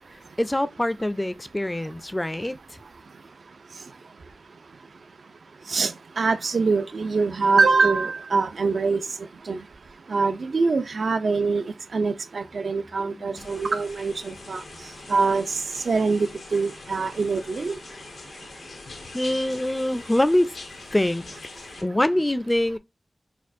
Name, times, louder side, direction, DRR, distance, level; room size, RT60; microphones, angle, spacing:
voice 1, 0.1-2.8 13.0-13.5 19.1-20.6 20.9-21.2 21.8-22.8, left 1 dB, 15° left, 0.4 m, -24 dB
voice 2, 5.7-9.0 9.5-9.6 10.1-11.6 11.9-14.6 15.1-15.5 15.9-17.8, right 4 dB, 75° right, 0.4 m, -23 dB
sound 1, 13.4-21.8, left 3 dB, 90° left, 0.8 m, -43 dB
4.2 x 2.3 x 2.5 m
wide cardioid pair, 70°, 0 cm